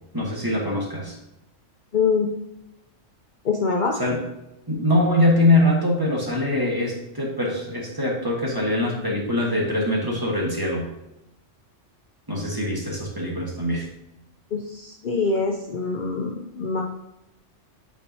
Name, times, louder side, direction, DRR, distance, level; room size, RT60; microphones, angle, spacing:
voice 1, 0.1-1.2 4.0-4.2 4.7-10.9 12.3-13.9, left 1 dB, 20° right, -3 dB, 1.3 m, -23 dB
voice 2, 1.9-2.3 3.4-3.9 14.5-16.8, left 4 dB, 50° left, 1 dB, 0.6 m, -24 dB
8.6 x 4.6 x 2.7 m, 0.89 s
omnidirectional pair, 1.3 m